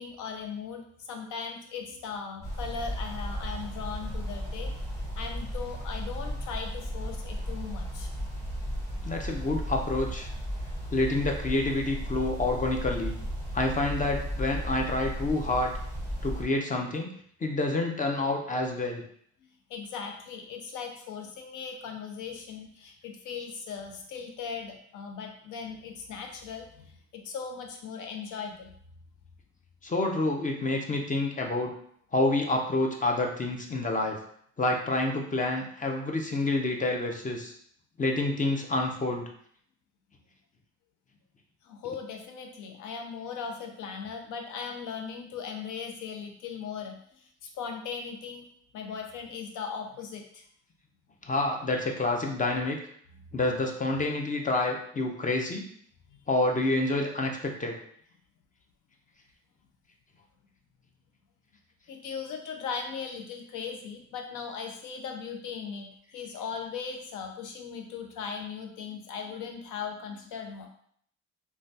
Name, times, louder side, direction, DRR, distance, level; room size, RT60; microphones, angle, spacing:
voice 1, 0.0-8.1 19.7-28.7 41.6-48.4 48.7-50.4 56.1-56.2 61.9-70.7, left 6 dB, 80° left, 4 dB, 0.6 m, -38 dB
sound 1, 2.4-16.4, equal, 10° left, 1.3 m, -35 dB
voice 2, 9.0-10.3 10.9-13.2 13.5-15.7 16.2-17.1 17.4-19.0 29.8-31.7 32.1-34.2 34.6-37.5 38.0-39.3 51.3-52.8 53.3-55.7 56.3-57.8, left 2 dB, 25° left, 2 dB, 0.5 m, -28 dB
3.2 x 2.3 x 2.7 m, 0.63 s
cardioid pair, 90°, 30 cm